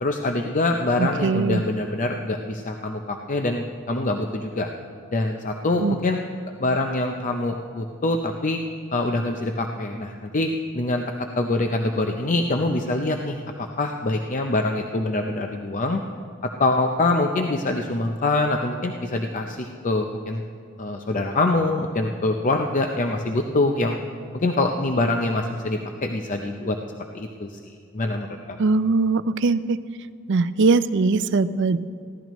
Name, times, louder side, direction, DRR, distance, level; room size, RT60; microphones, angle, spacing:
voice 1, 0.0-4.7 5.1-6.2 6.6-8.6 8.9-11.0 11.4-16.0 16.6-20.4 20.8-24.0 24.3-26.8 27.1-27.6 27.9-28.6, left 2 dB, 40° left, 4 dB, 0.6 m, -24 dB
voice 2, 1.0-1.6 5.8-6.0 28.6-29.8 30.3-31.8, right 3 dB, 60° right, 14 dB, 0.5 m, -21 dB
23.0 x 15.5 x 3.1 m, 2.3 s
head